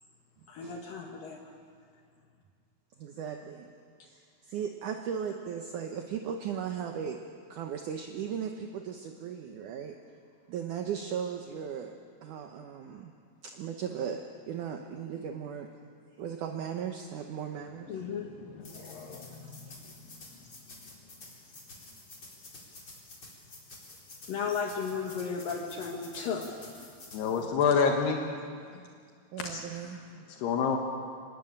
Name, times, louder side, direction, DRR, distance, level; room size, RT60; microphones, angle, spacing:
voice 1, 0.5-1.4 17.9-19.6 24.3-26.7 28.7-28.9 29.4-29.9, left 5 dB, 65° left, 1 dB, 3.2 m, -36 dB
voice 2, 3.0-3.7 4.1-7.2 7.5-10.0 10.5-11.9 12.2-13.1 13.4-15.7 16.2-18.0 19.4-19.8 29.3-30.0, right 8 dB, 65° right, 3 dB, 2.3 m, -37 dB
sound 1, 18.6-27.4, left 2 dB, 30° left, 4.5 m, -50 dB
voice 3, 27.1-28.2 30.4-30.8, left 6 dB, 85° left, 2 dB, 3.6 m, -26 dB
25.5 x 20.5 x 8.8 m, 2.1 s
omnidirectional pair, 4.5 m